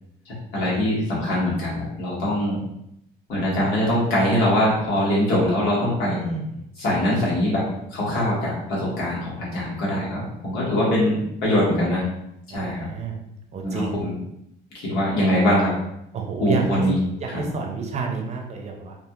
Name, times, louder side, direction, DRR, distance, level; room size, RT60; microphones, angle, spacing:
voice 1, 0.2-2.6 3.3-6.2 6.8-7.6 7.9-12.0 12.5-12.9 13.6-14.1 14.7-15.8 16.4-17.0 17.3-17.4, left 1 dB, 85° left, -6 dB, 1.3 m, -22 dB
voice 2, 6.1-6.6 12.5-13.2 13.5-14.1 16.1-16.8 17.2-19.0, right 4 dB, 40° right, 2 dB, 0.6 m, -30 dB
2.7 x 2.6 x 2.4 m, 0.80 s
cardioid pair, 110°, 17 cm